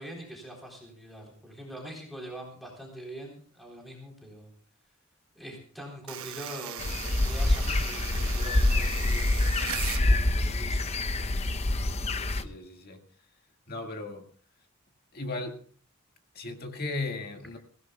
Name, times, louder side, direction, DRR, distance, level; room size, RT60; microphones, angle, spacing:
voice 1, 0.0-4.5 5.4-6.9 7.2-11.2, right 1 dB, ahead, 3.7 m, -44 dB
sound 1, 6.1-10.1, right 10 dB, 80° right, 1.0 m, -38 dB
sound 2, 6.8-12.4, left 2 dB, 30° left, 0.7 m, -26 dB
voice 2, 12.3-13.0 13.7-14.3 15.1-15.6 16.3-17.6, left 2 dB, 45° left, 1.9 m, -36 dB
23.5 x 16.5 x 2.3 m
head